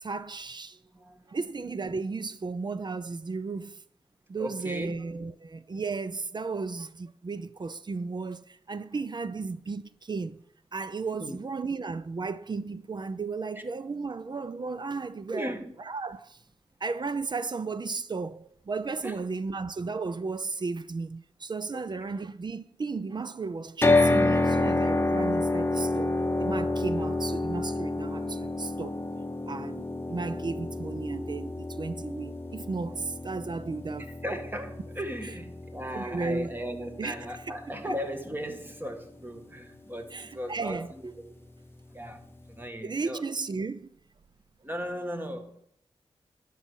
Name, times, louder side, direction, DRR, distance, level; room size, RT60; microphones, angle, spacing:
voice 1, 0.0-0.8 1.3-3.8 4.3-10.4 10.7-16.4 16.8-29.0 29.5-34.1 35.9-36.5 37.0-37.2 37.9-38.0 40.1-40.9 42.8-43.9, right 4 dB, 45° right, 0.6 m, -34 dB
voice 2, 0.9-1.3 4.4-4.9 11.2-11.4 15.3-15.8 19.0-19.1 21.7-22.1 34.2-41.5 41.9-42.2 42.5-43.2 44.6-45.6, equal, 20° right, 1.8 m, -37 dB
sound 1, 23.8-37.9, left 2 dB, 20° left, 0.9 m, -29 dB
11.5 x 5.5 x 6.4 m
cardioid pair, 55°, 11 cm